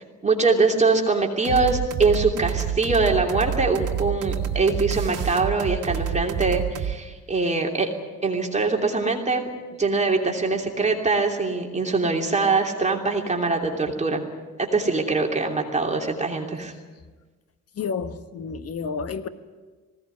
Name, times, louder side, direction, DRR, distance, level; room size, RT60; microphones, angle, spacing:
voice 1, 0.2-7.9 8.2-9.5 9.8-14.2 14.6-16.7, right 3 dB, 25° right, 1 dB, 3.0 m, -23 dB
sound 1, 1.4-6.9, right 9 dB, 90° right, 1.5 m, -28 dB
voice 2, 17.8-19.3, left 5 dB, 55° left, 10 dB, 1.4 m, -30 dB
19.5 x 17.0 x 9.6 m, 1.3 s
cardioid pair, 90°, 30 cm